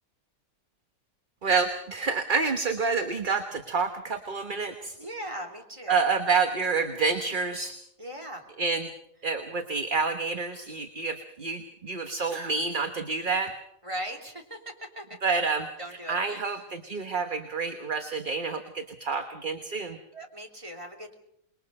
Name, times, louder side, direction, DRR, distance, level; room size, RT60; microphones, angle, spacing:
voice 1, 1.4-5.0 5.9-7.7 8.6-8.9 9.2-13.5 15.2-15.7 16.1-20.0, right 4 dB, 35° right, 6 dB, 1.4 m, -28 dB
voice 2, 5.0-6.1 8.0-8.4 13.8-14.6 14.9-15.4 15.8-16.4 20.1-21.1, right 1 dB, 20° right, 1 dB, 3.2 m, -39 dB
27.0 x 21.5 x 5.4 m, 0.75 s
omnidirectional pair, 1.5 m